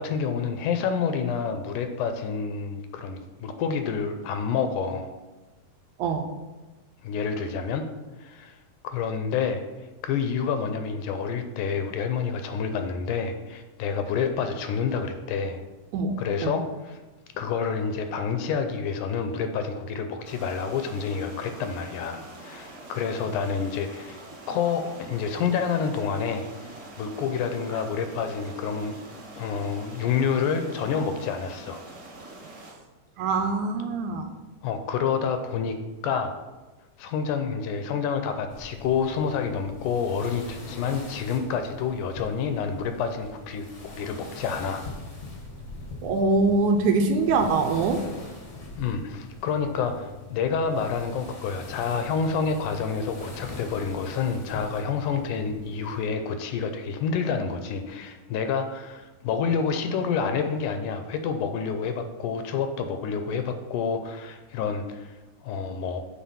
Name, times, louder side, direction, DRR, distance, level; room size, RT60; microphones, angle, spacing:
voice 1, 0.0-5.1 7.0-7.8 8.2-8.6 8.8-9.6 10.0-15.6 16.2-17.0 17.4-24.2 24.5-31.8 34.6-35.8 36.0-36.4 37.0-44.8 48.8-65.1 65.4-66.0, left 6 dB, 80° left, 7 dB, 2.0 m, -28 dB
sound 1, 20.2-32.7, right 2 dB, 45° right, 1.9 m, -45 dB
voice 2, 33.2-34.3 46.0-48.0, right 3 dB, 75° right, 5 dB, 1.9 m, -23 dB
sound 2, 38.5-56.1, left 3 dB, 45° left, 0.9 m, -42 dB
7.3 x 4.4 x 5.5 m, 1.1 s
omnidirectional pair, 3.8 m